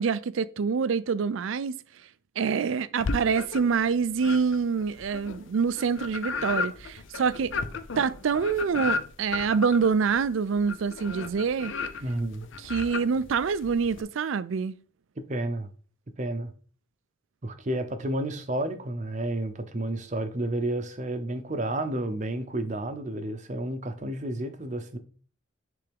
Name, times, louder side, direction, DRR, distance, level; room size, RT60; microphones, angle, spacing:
voice 1, 0.0-1.7 2.4-7.5 8.0-11.7 12.6-14.8, right 5 dB, 75° right, 0.4 m, -26 dB
sound 1, 3.0-3.8 4.2-14.0, left 4 dB, 65° left, 0.5 m, -34 dB
voice 2, 12.0-12.5 15.3-15.7 16.2-16.5 17.4-25.0, right 1 dB, 35° right, 0.7 m, -31 dB
10.0 x 3.4 x 3.4 m
head